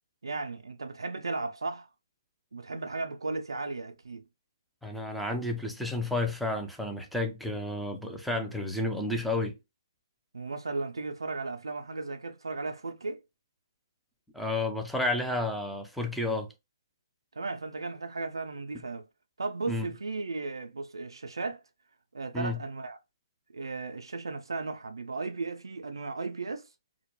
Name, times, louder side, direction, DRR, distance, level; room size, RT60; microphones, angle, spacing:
voice 1, 0.2-1.9 2.5-4.2 10.3-13.2 17.4-19.0 19.4-21.6 22.1-23.0 23.5-26.7, right 3 dB, 85° right, 0.3 m, -35 dB
voice 2, 4.8-9.5 14.3-16.5 19.7-19.9 22.3-22.6, left 2 dB, ahead, 0.3 m, -31 dB
2.2 x 2.0 x 2.9 m
hypercardioid pair, 145°, 2 cm